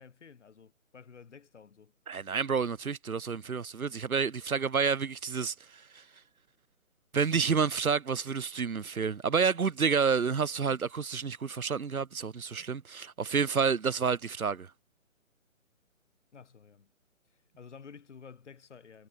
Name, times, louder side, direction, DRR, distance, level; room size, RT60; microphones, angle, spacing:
voice 1, 0.0-1.9 16.3-16.9 17.6-19.1, left 6 dB, 55° left, 5.7 m, -52 dB
voice 2, 2.1-5.5 5.9-6.0 7.1-14.7, right 6 dB, 85° right, 1.0 m, -29 dB
figure-of-eight pair, 145°, 41 cm